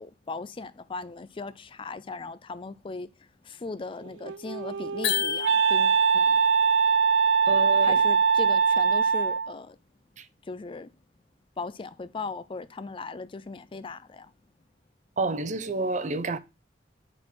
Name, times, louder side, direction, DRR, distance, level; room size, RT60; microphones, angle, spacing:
voice 1, 0.0-6.4 7.8-9.8 10.4-10.9 11.6-14.3, left 3 dB, 30° left, 0.4 m, -38 dB
Wind instrument woodwind instrument, 4.0-9.5, right 6 dB, 80° right, 0.3 m, -22 dB
sound 1, 5.0-6.2, left 7 dB, 75° left, 1.4 m, -29 dB
voice 2, 7.5-8.0 10.2-10.3 15.2-16.4, right 3 dB, 40° right, 0.6 m, -28 dB
9.8 x 4.3 x 4.4 m
head